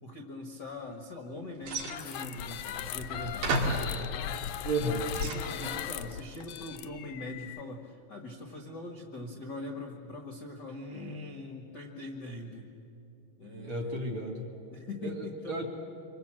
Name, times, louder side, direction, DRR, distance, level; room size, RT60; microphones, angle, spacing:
voice 1, 0.0-4.3 4.8-12.7 13.4-14.1 14.7-15.6, left 2 dB, 50° left, 2 dB, 1.2 m, -42 dB
sound 1, 1.6-2.4 3.1-3.2 3.4-3.9 4.6-5.8, right 3 dB, 80° right, 4.4 m, -33 dB
sound 2, 1.7-7.6, left 9 dB, 75° left, 1.8 m, -38 dB
voice 2, 4.6-5.1 13.5-14.5 15.0-15.7, right 2 dB, 40° right, 2 dB, 2.5 m, -33 dB
26.5 x 24.0 x 7.6 m, 2.7 s
omnidirectional pair, 4.3 m